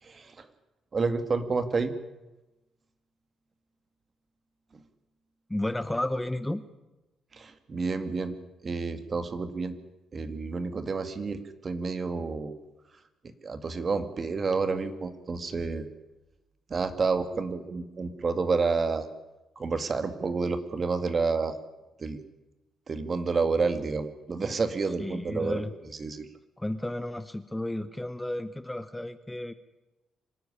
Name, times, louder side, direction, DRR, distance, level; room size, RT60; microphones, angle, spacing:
voice 1, 0.0-0.5 0.9-1.9 7.3-8.3 8.6-9.8 10.1-12.6 13.2-15.9 16.7-19.1 19.6-21.6 22.0-22.2 22.9-25.6 26.0-26.3, right 4 dB, 40° right, 10 dB, 2.2 m, -29 dB
voice 2, 5.5-6.6 25.0-25.7 26.6-29.5, left 1 dB, 10° left, 13 dB, 0.9 m, -32 dB
25.5 x 13.0 x 10.0 m, 1.0 s
cardioid pair, 90°, 0 cm